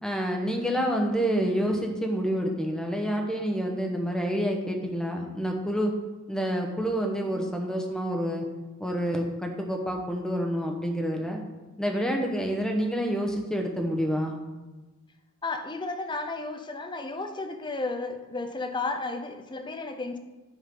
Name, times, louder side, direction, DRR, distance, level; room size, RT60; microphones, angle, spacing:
voice 1, 0.0-5.9 6.3-8.4 8.8-11.4 11.8-14.4, equal, 5° left, 2 dB, 0.9 m, -28 dB
voice 2, 15.4-20.2, left 3 dB, 20° left, 6 dB, 0.6 m, -33 dB
10.5 x 5.7 x 3.7 m, 1.2 s
head